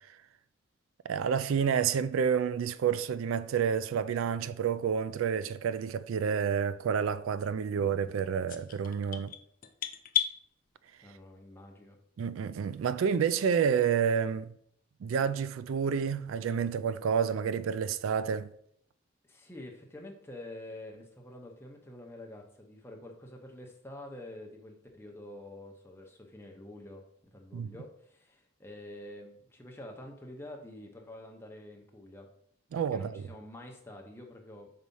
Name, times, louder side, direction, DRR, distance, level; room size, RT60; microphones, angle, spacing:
voice 1, 1.0-9.3 12.2-14.5 15.0-18.5 27.5-27.7 32.7-33.3, right 7 dB, 80° right, 0.3 m, -29 dB
sound 1, 8.5-10.4, left 10 dB, 45° left, 0.4 m, -33 dB
voice 2, 11.0-12.0 14.3-14.4 19.2-27.0 27.3-32.3 32.7-34.7, left 1 dB, 10° left, 0.8 m, -47 dB
4.7 x 4.1 x 5.4 m
head